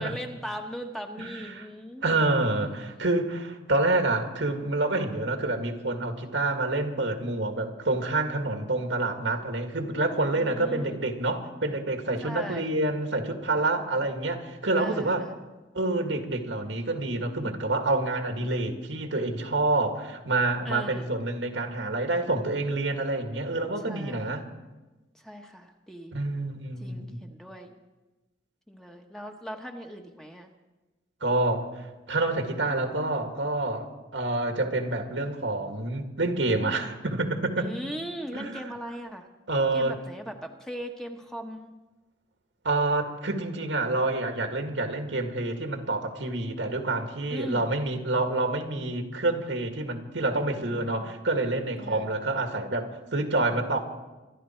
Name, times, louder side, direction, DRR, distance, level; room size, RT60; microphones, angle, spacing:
voice 1, 0.0-2.3 10.3-11.0 12.2-12.7 14.7-15.3 20.6-21.1 23.9-24.3 25.2-26.2 26.8-27.7 28.7-30.5 37.6-39.3 39.7-41.7 47.3-47.7 50.5-51.1 51.8-52.1, equal, 5° left, 3 dB, 1.1 m, -39 dB
voice 2, 1.2-1.7 2.0-15.3 15.7-24.4 26.1-27.2 31.2-37.7 38.3-38.6 39.5-40.0 42.6-53.8, right 2 dB, 90° right, 4 dB, 2.1 m, -28 dB
25.5 x 11.5 x 4.5 m, 1.1 s
head